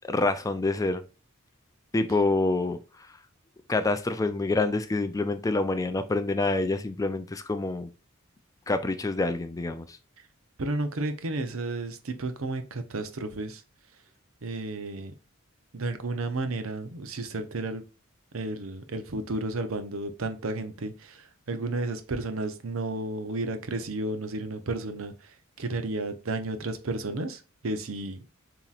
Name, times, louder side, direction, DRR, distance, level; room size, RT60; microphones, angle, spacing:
voice 1, 0.1-1.0 1.9-2.8 3.7-7.9 8.7-9.9, left 2 dB, 15° left, 0.3 m, -26 dB
voice 2, 10.6-13.6 14.4-15.1 15.7-17.8 18.3-25.1 25.6-28.2, right 2 dB, 70° right, 0.7 m, -32 dB
7.2 x 2.9 x 2.4 m
head